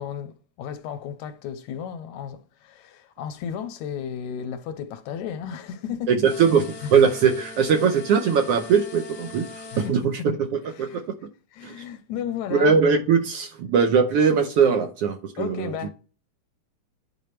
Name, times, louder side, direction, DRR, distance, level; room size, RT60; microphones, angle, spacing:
voice 1, 0.0-6.2 6.8-6.9 9.7-10.3 10.8-11.0 11.5-12.8 15.4-15.9, left 8 dB, 80° left, 2.0 m, -34 dB
voice 2, 6.1-10.2 10.8-11.2 11.6-11.8 12.5-15.8, right 6 dB, 70° right, 1.4 m, -21 dB
sound 1, 6.2-9.9, left 3 dB, 60° left, 1.4 m, -41 dB
10.0 x 4.6 x 3.2 m
omnidirectional pair, 3.5 m